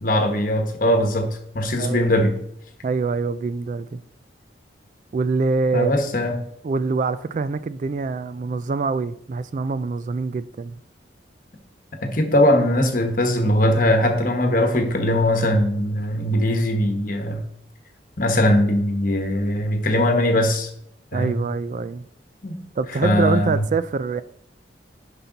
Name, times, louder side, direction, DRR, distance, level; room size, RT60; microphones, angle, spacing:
voice 1, 0.0-2.3 5.7-6.4 12.0-17.4 18.2-20.7 21.1-21.4 22.4-22.6 23.0-23.6, left 1 dB, 50° left, 1.3 m, -20 dB
voice 2, 1.8-2.1 2.8-4.0 5.1-5.9 6.6-10.8 21.1-22.0 22.8-24.2, right 4 dB, 45° right, 0.3 m, -25 dB
10.0 x 5.6 x 4.0 m
head